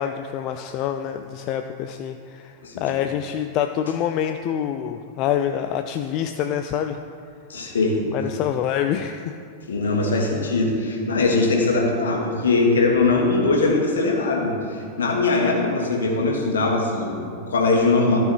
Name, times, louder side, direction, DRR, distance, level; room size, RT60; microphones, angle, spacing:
voice 1, 0.0-2.5 2.8-7.0 8.1-9.4, left 9 dB, 40° left, 7 dB, 0.3 m, -26 dB
voice 2, 7.5-8.1 9.7-18.2, left 3 dB, 65° left, 1 dB, 1.4 m, -21 dB
13.5 x 4.8 x 4.7 m, 2.4 s
figure-of-eight pair, 90°, 0 cm